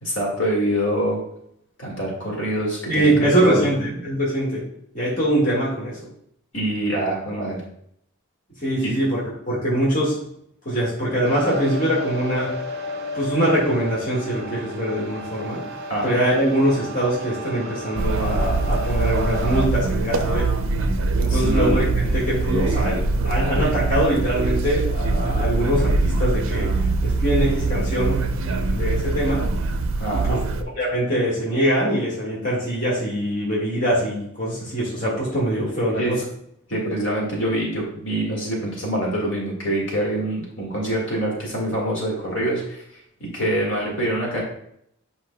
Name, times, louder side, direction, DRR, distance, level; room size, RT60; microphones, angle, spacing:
voice 1, 0.0-1.2 1.8-3.7 6.5-7.6 8.8-8.9 15.9-16.2 21.3-21.9 30.0-30.4 36.0-36.1 36.7-42.8 43.2-44.4, right 1 dB, 55° left, -2 dB, 1.9 m, -25 dB
voice 2, 2.9-4.6 4.9-6.0 8.6-10.2 10.6-12.5 13.1-15.6 16.0-20.5 21.2-29.5 30.2-30.4 30.8-36.2, right 1 dB, 35° left, -5 dB, 1.7 m, -23 dB
sound 1, 11.3-19.7, left 1 dB, 45° right, 0.8 m, -33 dB
sound 2, 18.0-30.6, right 3 dB, 65° right, 0.5 m, -23 dB
7.8 x 5.4 x 2.2 m, 0.71 s
head